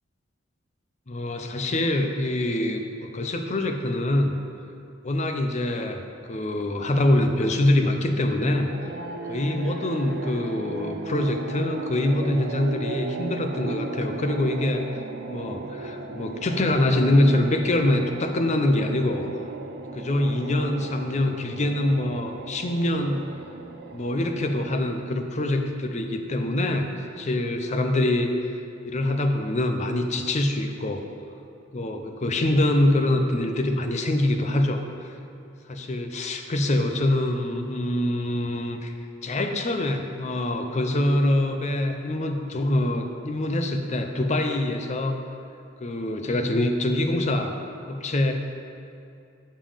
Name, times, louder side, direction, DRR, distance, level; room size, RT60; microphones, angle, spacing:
voice 1, 1.1-4.4 5.0-8.7 9.3-14.9 15.3-19.2 19.9-23.2 23.9-28.6 28.8-31.0 31.7-34.8 35.7-38.9 39.2-45.2 45.8-47.6 47.9-48.3, left 1 dB, 35° left, 5 dB, 0.5 m, -24 dB
sound 1, 8.5-25.1, right 3 dB, 55° right, 0.5 m, -36 dB
7.3 x 5.3 x 5.0 m, 2.6 s
head